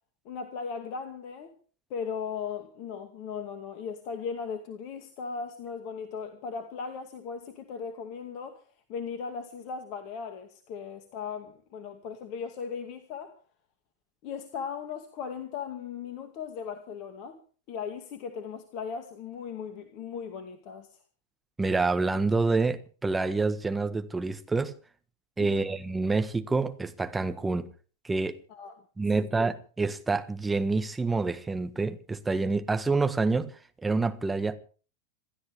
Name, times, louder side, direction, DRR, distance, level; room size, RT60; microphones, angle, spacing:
voice 1, 0.2-1.6 1.9-8.6 8.9-13.4 14.2-17.4 17.7-20.9 25.4-25.7 28.5-28.7 29.1-29.3, left 6 dB, 45° left, 2.2 m, -37 dB
voice 2, 21.6-24.7 25.4-27.7 28.0-28.4 29.0-33.5 33.8-34.6, right 3 dB, 10° right, 1.5 m, -27 dB
27.5 x 13.0 x 3.6 m
figure-of-eight pair, 90°, 0 cm